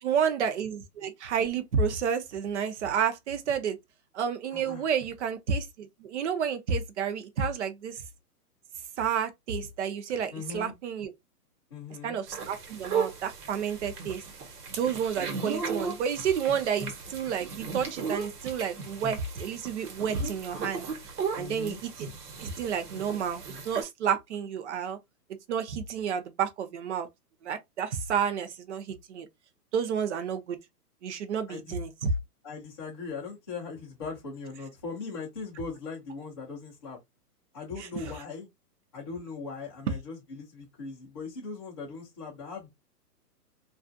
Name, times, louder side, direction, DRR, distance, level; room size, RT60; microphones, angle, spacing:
voice 1, 0.0-3.8 4.1-8.0 9.0-11.1 12.0-14.2 14.7-20.8 21.3-22.1 22.4-25.0 25.5-27.1 27.4-29.3 29.7-30.6 31.0-32.1, right 7 dB, 50° right, 0.6 m, -30 dB
voice 2, 4.5-4.8 10.3-10.8 11.7-12.2 21.3-21.8 31.5-31.7 32.4-37.0 37.5-38.5 38.9-42.7, left 4 dB, 15° left, 0.4 m, -39 dB
sound 1, 12.3-23.8, right 5 dB, 70° right, 1.1 m, -36 dB
2.4 x 2.3 x 2.4 m
hypercardioid pair, 155°, 48 cm